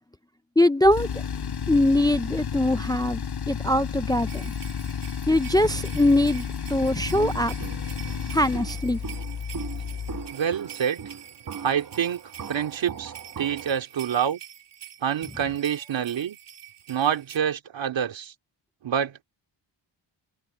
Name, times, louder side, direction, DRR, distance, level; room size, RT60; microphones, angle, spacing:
voice 1, 0.6-1.2 1.7-4.5 5.3-7.6 8.3-9.0, left 1 dB, 10° left, 0.4 m, -22 dB
Tools, 0.8-10.3, left 7 dB, 60° left, 7.2 m, -32 dB
sound 1, 4.3-17.4, right 10 dB, 65° right, 3.6 m, -46 dB
Walk footsteps, 7.1-13.8, right 6 dB, 50° right, 1.7 m, -40 dB
voice 2, 10.3-11.0 11.6-12.2 12.5-14.4 15.0-16.4 16.9-18.3 18.8-19.2, right 8 dB, 80° right, 2.7 m, -27 dB
wide cardioid pair, 155°, 44 cm